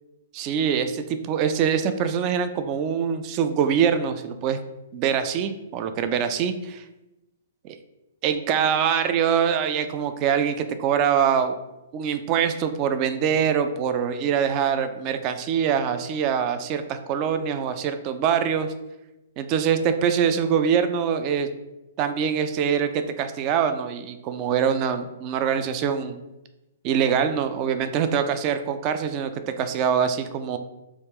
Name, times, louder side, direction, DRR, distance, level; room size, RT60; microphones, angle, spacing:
voice 1, 0.3-4.6 4.9-6.8 8.2-11.5 11.9-18.7 19.4-21.5 22.0-26.2 26.8-30.6, right 7 dB, 35° right, 9 dB, 0.3 m, -24 dB
3.1 x 2.3 x 3.4 m, 0.96 s
hypercardioid pair, 125°, 0 cm